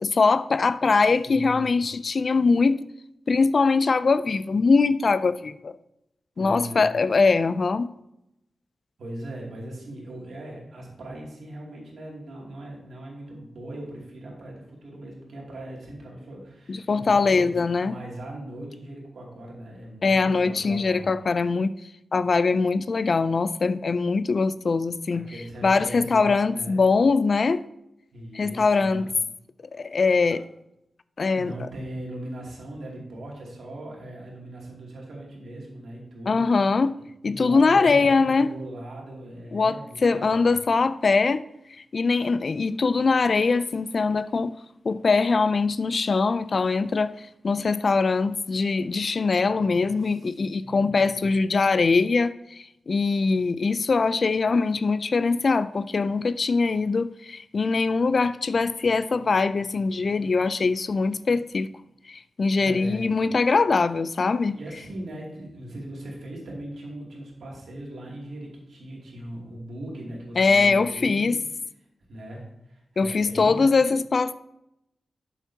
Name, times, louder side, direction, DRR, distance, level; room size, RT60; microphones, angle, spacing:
voice 1, 0.0-2.8 3.3-5.7 6.4-7.9 16.7-17.9 20.0-21.7 22.1-25.3 25.6-27.6 28.3-29.1 29.7-30.4 31.2-31.5 36.3-36.9 37.2-38.5 39.5-41.4 41.9-44.5 44.8-61.7 62.1-64.6 70.4-71.4 73.0-74.3, left 4 dB, 45° left, 0.3 m, -22 dB
voice 2, 1.2-1.8 6.4-6.9 9.0-21.2 25.1-26.8 28.1-29.1 31.2-36.8 37.2-40.5 50.1-50.3 50.6-51.3 62.6-63.1 64.5-71.3 72.1-73.7, right 1 dB, 75° right, 2.5 m, -39 dB
12.0 x 7.0 x 2.8 m
wide cardioid pair, 140°, 0 cm